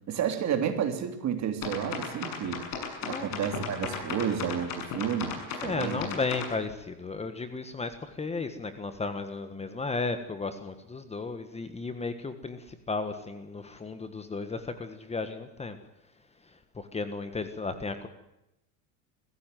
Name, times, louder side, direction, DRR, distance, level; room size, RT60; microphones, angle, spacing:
voice 1, 0.1-2.7 3.0-6.0, right 8 dB, 40° right, 7 dB, 3.2 m, -31 dB
sound 1, 1.6-6.5, left 6 dB, 50° left, 7.2 m, -35 dB
voice 2, 5.6-15.8 16.4-18.1, left 3 dB, 15° left, 9 dB, 1.5 m, -34 dB
22.0 x 15.5 x 9.3 m, 0.88 s
supercardioid pair, 130°, 43 cm